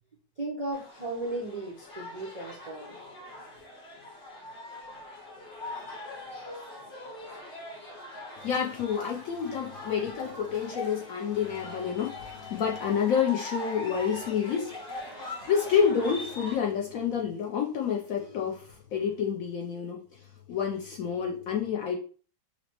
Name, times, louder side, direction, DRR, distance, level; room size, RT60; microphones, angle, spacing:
voice 1, 0.4-3.0, right 2 dB, 75° right, 0.3 m, -35 dB
sound 1, 0.7-16.5, left 2 dB, 40° left, 0.9 m, -42 dB
voice 2, 8.4-22.0, left 7 dB, 70° left, 0.8 m, -29 dB
5.8 x 2.1 x 2.9 m
omnidirectional pair, 1.9 m